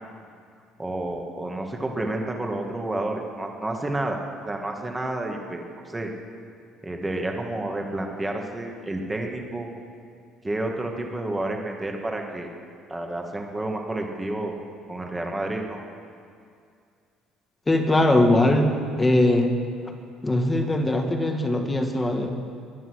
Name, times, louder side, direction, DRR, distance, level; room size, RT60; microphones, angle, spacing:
voice 1, 0.8-4.2 4.5-6.1 6.8-9.7 10.4-12.5 12.9-14.6 14.9-15.8, right 2 dB, 10° right, 2 dB, 1.9 m, -30 dB
voice 2, 17.7-19.5 19.9-20.0 20.2-22.3, left 1 dB, 15° left, 4 dB, 1.6 m, -21 dB
21.0 x 11.0 x 6.4 m, 2.3 s
cardioid pair, 150°, 0 cm